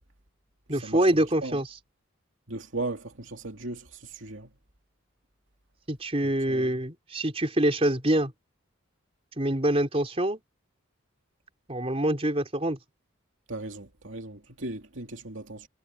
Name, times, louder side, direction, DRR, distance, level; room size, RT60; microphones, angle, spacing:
voice 1, 0.7-1.8 5.9-8.3 9.4-10.4 11.7-12.8, right 1 dB, 30° right, 4.0 m, -25 dB
voice 2, 2.5-3.8 4.1-4.5 6.2-6.7 13.5-15.7, right 2 dB, 70° right, 2.6 m, -37 dB
head